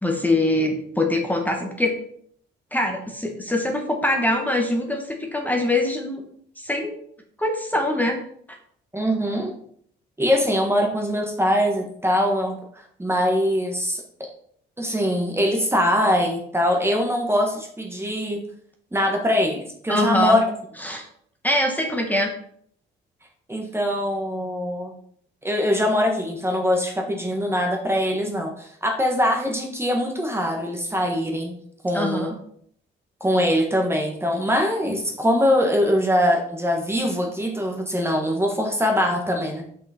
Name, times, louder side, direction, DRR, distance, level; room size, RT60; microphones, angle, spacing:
voice 1, 0.0-1.9 2.7-6.2 6.6-6.9 7.4-8.2 19.9-20.4 20.8-21.0 21.4-22.3 31.9-32.4, left 1 dB, 10° left, 2 dB, 1.4 m, -23 dB
voice 2, 8.9-9.5 10.2-12.6 13.0-14.0 14.8-18.4 18.9-20.4 23.5-25.0 25.4-31.5 31.8-32.3 33.2-39.6, equal, 10° right, 1 dB, 1.4 m, -22 dB
6.1 x 5.8 x 4.3 m, 0.64 s
cardioid pair, 90°, 20 cm